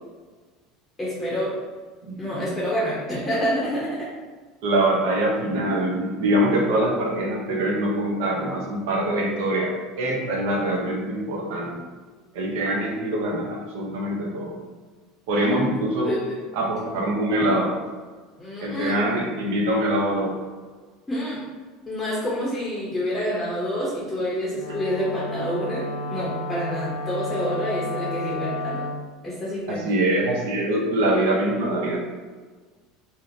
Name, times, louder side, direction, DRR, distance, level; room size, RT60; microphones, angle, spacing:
voice 1, 1.0-1.5 2.2-4.1 15.4-15.6 16.0-16.4 18.4-18.9 21.1-21.4 21.9-28.9 29.2-29.8, equal, 15° left, -7 dB, 0.6 m, -28 dB
voice 2, 2.0-2.5 4.6-9.7 10.0-11.8 12.3-14.6 15.3-16.1 16.5-17.7 18.6-20.3 24.7-24.8 29.7-32.0, right 1 dB, 75° right, -1 dB, 0.6 m, -24 dB
Wind instrument woodwind instrument, 24.5-29.0, left 1 dB, 65° left, 0.3 m, -31 dB
2.7 x 2.0 x 2.6 m, 1.4 s
supercardioid pair, 100°, 0 cm